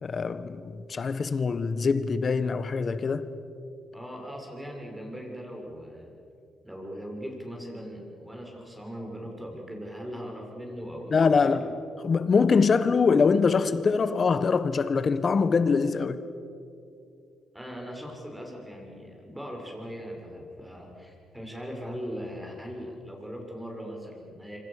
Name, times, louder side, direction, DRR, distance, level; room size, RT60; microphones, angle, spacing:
voice 1, 0.0-3.3 11.1-11.7 12.0-16.2, left 5 dB, 40° left, 1.5 m, -23 dB
voice 2, 3.9-6.2 6.6-11.5 17.5-24.6, equal, 5° right, 6.9 m, -39 dB
26.0 x 25.5 x 6.9 m
cardioid pair, 90°, 0 cm